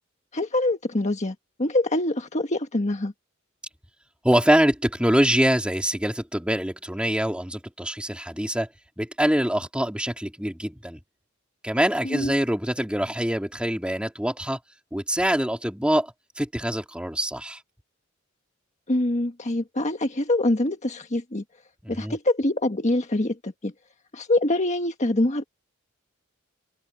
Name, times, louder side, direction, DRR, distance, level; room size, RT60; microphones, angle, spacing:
voice 1, 0.3-3.1 12.0-12.3 18.9-21.4 21.9-23.7 24.1-25.4, left 1 dB, 35° left, 1.4 m, -25 dB
voice 2, 4.2-8.7 9.0-11.0 11.6-14.6 14.9-17.6 21.8-22.2, equal, 5° right, 3.6 m, -24 dB
head